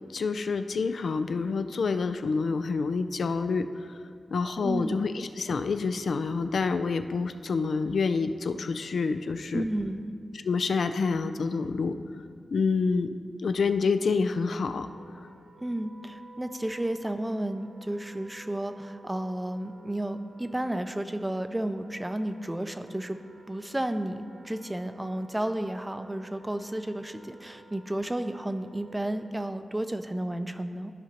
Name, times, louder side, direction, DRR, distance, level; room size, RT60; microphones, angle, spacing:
voice 1, 0.1-9.6 10.3-12.0 12.5-14.9, left 4 dB, 80° left, 9 dB, 0.3 m, -28 dB
voice 2, 4.6-5.0 9.5-10.2 15.6-23.2 23.5-30.9, right 1 dB, 15° right, 9 dB, 0.4 m, -32 dB
Wind instrument woodwind instrument, 14.6-29.4, right 2 dB, 85° right, 0.7 m, -54 dB
13.0 x 5.1 x 2.9 m, 2.2 s
cardioid pair, 65°, 0 cm